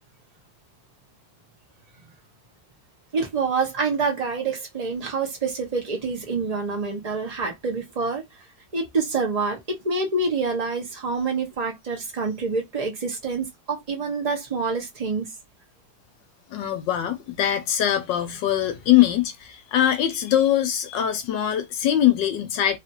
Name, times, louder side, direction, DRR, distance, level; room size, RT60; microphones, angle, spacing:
voice 1, 3.1-8.2 8.7-15.3, right 4 dB, 75° right, 0.3 m, -27 dB
voice 2, 16.5-22.8, left 11 dB, 75° left, 1.2 m, -22 dB
3.3 x 2.4 x 2.8 m
omnidirectional pair, 2.1 m